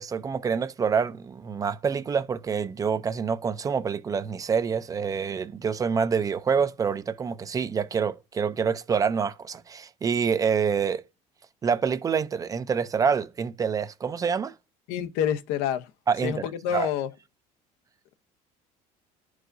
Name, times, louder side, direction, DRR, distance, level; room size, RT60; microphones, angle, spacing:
voice 1, 0.0-11.0 11.6-14.5 16.1-16.4 16.7-16.9, right 6 dB, 20° right, 0.4 m, -26 dB
voice 2, 14.9-15.9 16.2-17.1, left 9 dB, 80° left, 0.8 m, -27 dB
11.0 x 4.7 x 2.6 m
cardioid pair, 140°, 16 cm